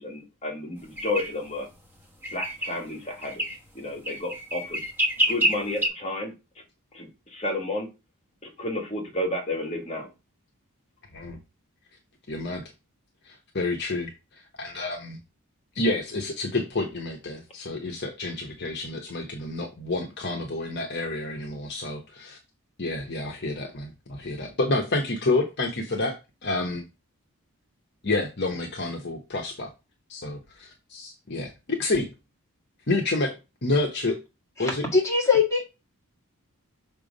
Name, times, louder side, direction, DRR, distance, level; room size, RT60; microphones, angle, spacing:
voice 1, 0.0-1.7 2.3-3.4 3.7-4.8 5.3-6.3 6.9-7.9 8.6-10.1, left 1 dB, 30° left, 0 dB, 2.0 m, -31 dB
sound 1, 1.0-1.3 2.2-2.8 3.2-3.6 4.1-5.9, equal, 10° right, 1.1 m, -26 dB
voice 2, 12.3-12.6 13.3-14.1 14.6-15.2 15.7-22.4 22.8-26.1 26.4-26.8 28.0-29.7 30.1-32.1 32.9-33.4 33.6-34.2 34.6-34.8, left 2 dB, 50° left, 1 dB, 1.1 m, -29 dB
voice 3, 34.6-35.6, left 5 dB, 15° left, -2 dB, 2.0 m, -22 dB
5.9 x 3.4 x 5.2 m, 0.26 s
head